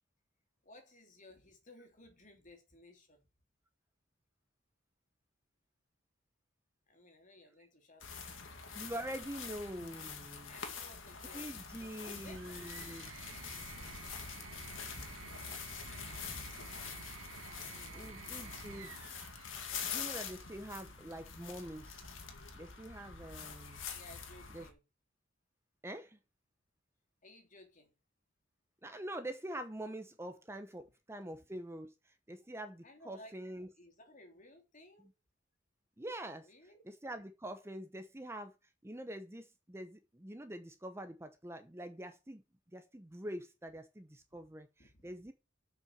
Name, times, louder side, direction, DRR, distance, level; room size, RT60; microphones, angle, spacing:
voice 1, 0.6-3.2 6.9-8.6 10.4-12.6 17.7-18.2 23.9-24.8 27.2-27.9 32.8-33.3 33.8-35.1 36.4-36.8 44.8-45.2, left 1 dB, 40° left, 2.9 m, -58 dB
sound 1, 8.0-24.7, left 6 dB, 80° left, 2.1 m, -45 dB
voice 2, 8.7-10.6 11.3-13.1 17.9-19.3 19.8-22.1 22.5-23.8 24.5-24.7 25.8-26.2 28.8-33.7 35.0-35.1 36.0-36.5 36.8-38.5 38.8-42.4 42.7-45.3, right 1 dB, 15° right, 0.8 m, -45 dB
sound 2, 12.1-20.5 21.7-22.3, right 8 dB, 85° right, 0.5 m, -53 dB
7.6 x 5.8 x 7.3 m
head